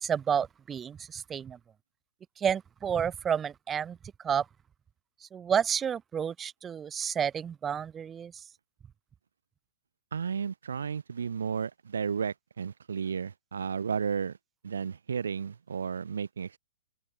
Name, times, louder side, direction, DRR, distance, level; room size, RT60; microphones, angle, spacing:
voice 1, 0.0-1.6 2.4-4.0 4.2-4.5 5.2-8.4, right 8 dB, 15° right, 0.7 m, -30 dB
voice 2, 10.1-14.4 14.6-16.6, right 6 dB, 90° right, 2.8 m, -33 dB
open air
hypercardioid pair, 155°, 0 cm